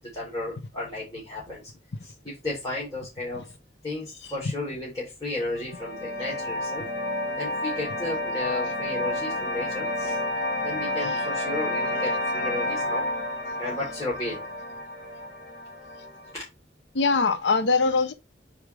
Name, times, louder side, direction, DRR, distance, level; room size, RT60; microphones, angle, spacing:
voice 1, 0.1-1.6 2.0-3.4 3.8-6.9 7.4-10.2 10.6-13.0 13.6-14.4 16.3-16.4, left 2 dB, 20° left, 3.6 m, -33 dB
sound 1, 5.3-16.3, left 1 dB, 50° left, 2.7 m, -30 dB
voice 2, 16.9-18.1, left 4 dB, 70° left, 0.7 m, -22 dB
8.2 x 4.9 x 3.4 m
head